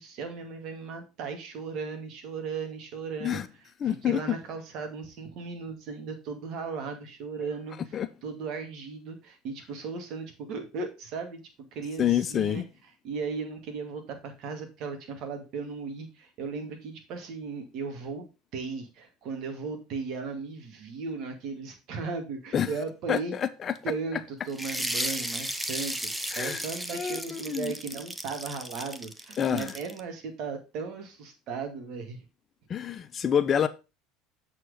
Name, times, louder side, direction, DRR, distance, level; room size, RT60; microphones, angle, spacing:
voice 1, 0.0-11.4 11.7-12.7 13.0-18.3 18.5-23.4 23.8-32.3, right 5 dB, 60° right, 2.2 m, -36 dB
voice 2, 3.8-4.4 7.9-8.1 12.0-12.6 22.5-22.7 23.1-23.7 26.3-26.6 26.9-27.7 29.4-29.7 32.7-33.7, left 9 dB, 35° left, 0.7 m, -27 dB
sound 1, 24.5-30.0, right 1 dB, 5° right, 0.7 m, -35 dB
7.3 x 4.4 x 4.9 m
supercardioid pair, 105°, 0 cm